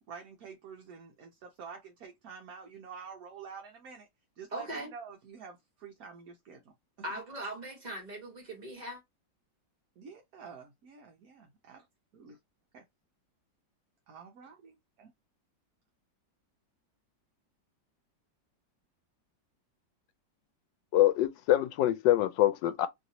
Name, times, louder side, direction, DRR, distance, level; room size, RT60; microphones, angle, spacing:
voice 1, 0.0-4.1 4.4-4.7 4.9-5.6 5.8-6.6 10.0-11.8 12.1-12.4 12.7-12.8 14.1-15.1, right 6 dB, 60° right, 1.1 m, -48 dB
voice 2, 4.5-4.9 7.0-9.0, right 1 dB, 25° right, 1.1 m, -39 dB
voice 3, 20.9-22.9, left 13 dB, 80° left, 1.2 m, -25 dB
3.2 x 2.6 x 2.7 m
omnidirectional pair, 2.0 m